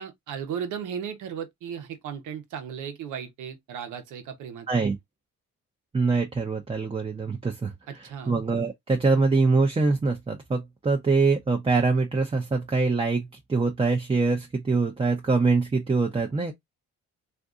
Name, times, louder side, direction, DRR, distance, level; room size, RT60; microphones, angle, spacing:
voice 1, 0.0-4.7 7.9-8.4, right 8 dB, 85° right, 1.0 m, -36 dB
voice 2, 5.9-7.7 8.0-16.5, right 4 dB, 20° right, 0.6 m, -24 dB
2.6 x 2.6 x 3.5 m
cardioid pair, 90°, 30 cm